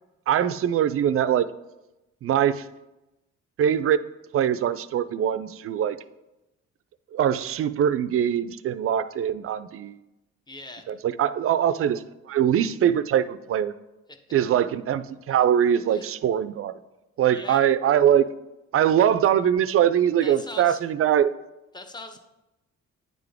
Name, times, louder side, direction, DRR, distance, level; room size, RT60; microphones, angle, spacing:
voice 1, 0.3-1.5 2.2-2.7 3.6-4.0 4.3-6.0 7.1-10.0 10.9-13.7 14.3-16.7 17.2-18.3 18.7-21.3, right 9 dB, 50° right, 15 dB, 0.4 m, -22 dB
voice 2, 10.5-10.9 15.9-16.1 17.2-17.6 20.2-20.8 21.7-22.2, left 2 dB, 15° left, 6 dB, 0.8 m, -40 dB
9.5 x 3.7 x 3.5 m, 0.96 s
cardioid pair, 90°, 30 cm